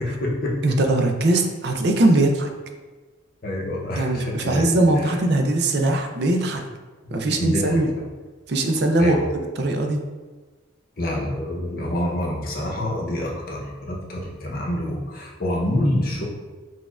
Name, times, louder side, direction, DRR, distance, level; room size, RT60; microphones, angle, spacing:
voice 1, 0.0-0.7 3.4-4.8 7.0-8.0 9.0-9.2 11.0-16.2, left 1 dB, 45° left, -2 dB, 0.7 m, -27 dB
voice 2, 0.6-2.5 4.0-6.6 7.1-7.9 8.5-10.1, right 2 dB, 55° right, 4 dB, 0.4 m, -20 dB
6.1 x 2.2 x 2.4 m, 1.3 s
head